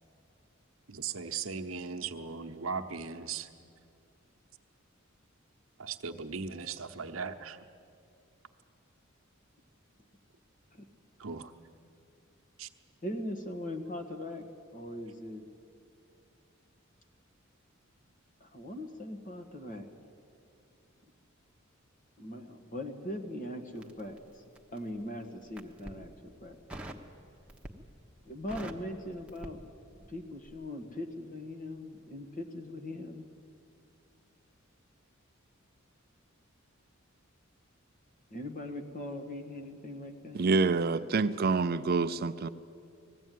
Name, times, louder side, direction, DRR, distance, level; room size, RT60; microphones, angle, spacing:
voice 1, 0.9-3.5 5.8-7.6 11.2-11.5 12.6-12.7, right 5 dB, 75° right, 0.9 m, -38 dB
voice 2, 13.0-15.4 18.4-19.9 22.2-24.4 24.7-26.6 28.3-29.6 30.1-33.3 38.3-40.4, left 1 dB, 40° left, 1.7 m, -40 dB
Crackle, 23.8-24.9 25.4-26.0 26.7-27.1 27.5-28.0 28.2-30.2 30.4-30.7, right 1 dB, 5° right, 1.1 m, -45 dB
voice 3, 40.3-42.5, right 4 dB, 50° right, 0.5 m, -27 dB
20.0 x 14.5 x 9.3 m
head